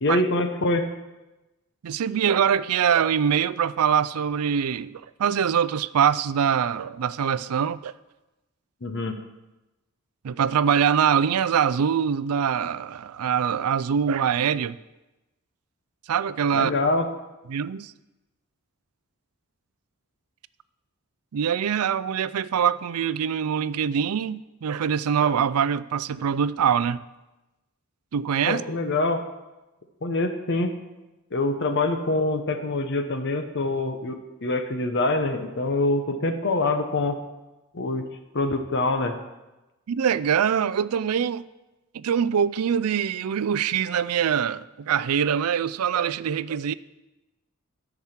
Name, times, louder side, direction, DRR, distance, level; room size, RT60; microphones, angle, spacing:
voice 1, 0.0-0.9 8.8-9.2 16.5-17.1 28.5-29.2 30.0-30.7 31.3-37.2 37.7-38.0 38.3-39.2, left 2 dB, 55° left, 0.9 m, -25 dB
voice 2, 1.8-7.9 10.2-14.8 16.1-16.7 17.5-17.9 21.3-27.0 28.1-28.6 39.9-41.5 41.9-46.7, right 8 dB, 85° right, 0.4 m, -23 dB
12.0 x 6.1 x 7.3 m
head